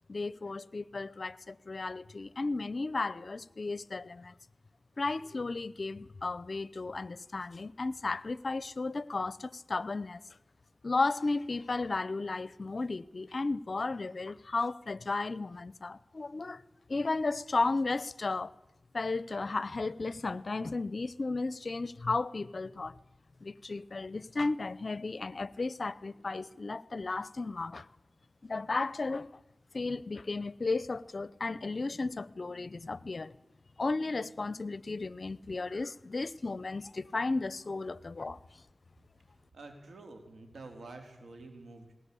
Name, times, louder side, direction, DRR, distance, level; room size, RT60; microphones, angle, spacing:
voice 1, 0.1-4.3 5.0-10.2 10.8-16.6 16.9-18.5 18.9-22.9 23.4-27.9 28.4-29.3 29.7-33.3 33.8-38.4, left 3 dB, 60° left, 0.7 m, -34 dB
voice 2, 39.5-42.0, right 2 dB, 90° right, 3.9 m, -48 dB
20.5 x 18.5 x 8.5 m
cardioid pair, 45°, 0 cm